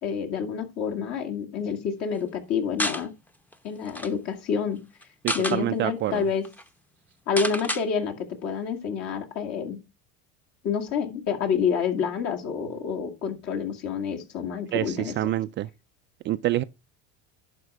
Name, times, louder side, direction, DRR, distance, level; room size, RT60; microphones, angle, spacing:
voice 1, 0.0-3.1 3.6-4.9 5.3-6.5 7.3-9.8 10.6-15.4, left 6 dB, 50° left, 2.3 m, -28 dB
sound 1, 2.8-3.0 3.5-3.6 3.8-4.1 5.0-5.6 6.1-6.2 6.4-6.6 7.4-7.8, left 1 dB, 5° left, 0.8 m, -29 dB
voice 2, 5.2-6.2 14.7-15.7 16.2-16.6, right 14 dB, 35° right, 0.4 m, -27 dB
11.5 x 4.4 x 4.8 m
supercardioid pair, 130°, 32 cm